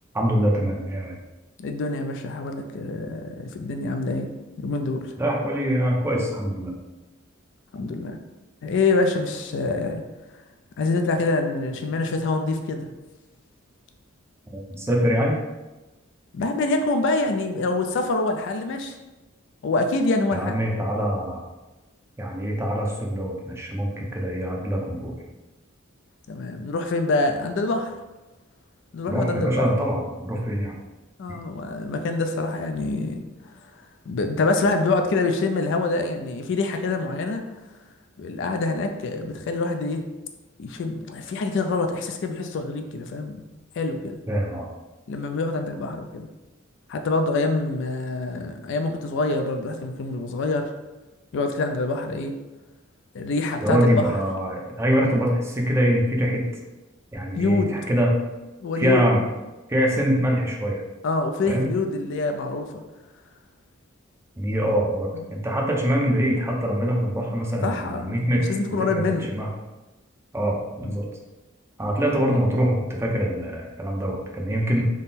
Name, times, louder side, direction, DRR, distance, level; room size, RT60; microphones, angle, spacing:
voice 1, 0.1-1.2 5.2-6.7 14.5-15.4 20.3-21.4 22.2-25.2 29.1-30.7 44.3-44.7 53.6-56.4 57.1-58.1 58.8-59.2 59.7-60.8 61.5-61.7 64.4-69.0 69.3-69.5 70.3-71.1 71.8-74.9, equal, 15° right, -1 dB, 0.5 m, -24 dB
voice 2, 1.6-4.3 4.6-5.1 7.7-8.2 8.6-10.0 10.8-12.9 16.3-19.0 19.6-20.6 26.3-27.9 28.9-29.7 31.2-33.2 34.1-37.4 38.2-40.0 40.6-43.4 43.8-44.2 45.1-46.3 46.9-50.7 51.3-52.3 53.1-54.1 57.3-57.8 58.6-59.0 61.0-62.8 65.1-65.3 67.6-69.3 70.8-71.0 74.7-74.9, left 3 dB, 60° left, 5 dB, 0.4 m, -25 dB
3.6 x 2.0 x 4.1 m, 1.1 s
head